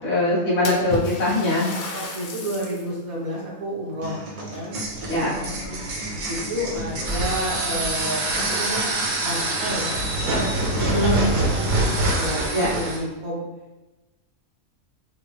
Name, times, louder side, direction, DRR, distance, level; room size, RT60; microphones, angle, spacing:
voice 1, 0.0-1.8 5.1-5.8 10.8-11.8 12.5-12.7, left 1 dB, 85° left, -7 dB, 1.7 m, -23 dB
Splash splatter, 0.6-2.9 3.4-3.5 4.5-5.5 5.8-6.3 7.1-7.2 7.7-7.8 10.0-10.1 10.4-10.5 11.0-11.1 11.5-11.6 12.4-12.9, left 2 dB, 55° left, 0.7 m, -34 dB
voice 2, 1.9-8.9 9.2-10.5 10.8-13.4, equal, 85° right, -4 dB, 1.6 m, -31 dB
sound 1, 4.0-12.0, right 1 dB, 45° right, 0.4 m, -37 dB
sound 2, 4.7-13.0, right 2 dB, 70° right, 1.2 m, -25 dB
5.9 x 2.0 x 3.2 m, 1.1 s
omnidirectional pair, 1.4 m